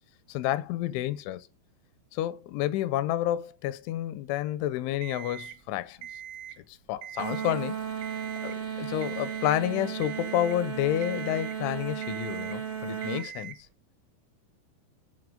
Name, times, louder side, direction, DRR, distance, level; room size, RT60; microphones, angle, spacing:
voice 1, 0.3-1.5 2.1-6.0 6.9-7.8 8.4-13.6, left 13 dB, 90° left, 3.1 m, -30 dB
Alarm, 5.0-5.6 6.0-6.6 7.0-7.6 8.0-8.6 9.0-9.6 10.0-10.6 11.0-11.6 12.0-12.6 13.0-13.6, right 10 dB, 90° right, 3.0 m, -42 dB
sound 1, 7.2-13.3, right 7 dB, 75° right, 0.6 m, -35 dB
9.8 x 4.7 x 5.0 m
omnidirectional pair, 5.3 m